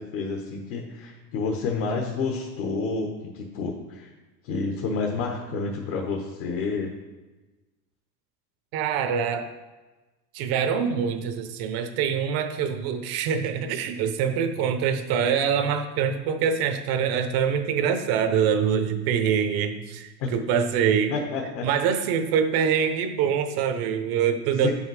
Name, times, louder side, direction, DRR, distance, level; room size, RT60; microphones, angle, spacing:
voice 1, 0.0-4.1 4.4-6.9 20.2-20.3 21.1-21.7 24.6-24.7, left 4 dB, 60° left, 1 dB, 1.2 m, -29 dB
voice 2, 8.7-9.5 10.3-21.1 21.6-24.7, right 7 dB, 45° right, 8 dB, 0.8 m, -24 dB
7.0 x 5.5 x 4.7 m, 1.2 s
supercardioid pair, 130°, 49 cm